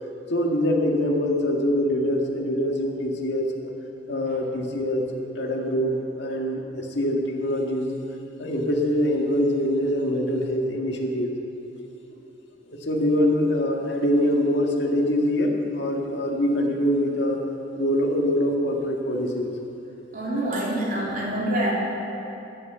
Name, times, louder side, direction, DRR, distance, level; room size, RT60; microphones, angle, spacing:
voice 1, 0.3-3.5 4.1-7.9 8.4-11.3 12.7-17.4 17.7-19.5, equal, 80° left, 1 dB, 1.7 m, -24 dB
voice 2, 20.1-21.7, right 1 dB, 50° right, -5 dB, 3.3 m, -26 dB
11.0 x 9.7 x 8.0 m, 2.9 s
head